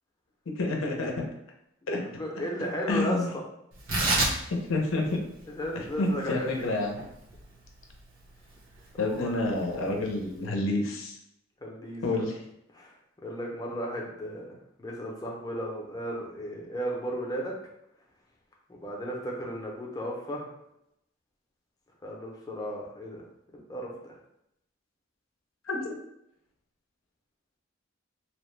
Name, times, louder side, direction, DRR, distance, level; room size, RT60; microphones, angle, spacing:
voice 1, 0.6-1.2 1.9-2.0 2.9-3.3 4.7-5.2 6.0-7.0 9.0-11.2 12.0-12.3 25.7-25.9, left 2 dB, 85° left, 1 dB, 0.6 m, -28 dB
voice 2, 2.2-3.2 5.5-6.6 8.9-9.5 11.6-12.3 12.7-14.4 14.8-17.5 18.7-20.5 22.0-23.2 23.7-24.1, equal, 20° left, -2 dB, 0.5 m, -35 dB
Tearing, 3.7-10.4, right 2 dB, 90° right, 1.0 m, -33 dB
2.8 x 2.1 x 3.1 m, 0.80 s
head